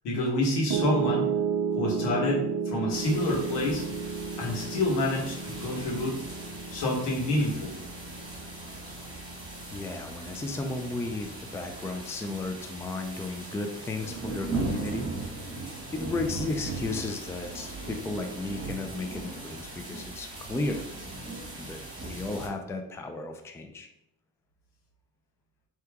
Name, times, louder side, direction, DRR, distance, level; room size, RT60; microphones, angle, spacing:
voice 1, 0.0-1.3 1.7-3.8 4.4-6.2 6.7-7.8, left 1 dB, 85° left, -2 dB, 1.4 m, -28 dB
Piano, 0.7-12.9, right 6 dB, 75° right, 0.6 m, -34 dB
sound 1, 2.9-22.5, right 2 dB, 10° right, 1.6 m, -39 dB
voice 2, 9.7-15.4 15.9-20.9 21.5-23.9, left 2 dB, 5° left, 5 dB, 0.4 m, -34 dB
4.4 x 2.9 x 3.5 m, 0.82 s
cardioid pair, 90°, 40 cm